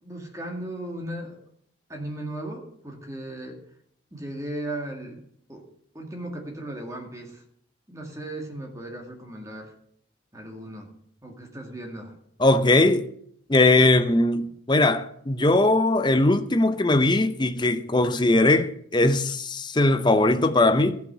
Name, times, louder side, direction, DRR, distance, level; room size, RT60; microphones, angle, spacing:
voice 1, 0.0-1.4 1.9-3.6 4.1-5.2 5.5-5.7 5.9-7.4 7.9-9.7 10.3-10.9 11.2-12.2, right 1 dB, 15° right, 2.1 m, -36 dB
voice 2, 12.4-13.1 13.5-21.0, left 2 dB, 25° left, 0.7 m, -20 dB
15.0 x 5.8 x 8.0 m
head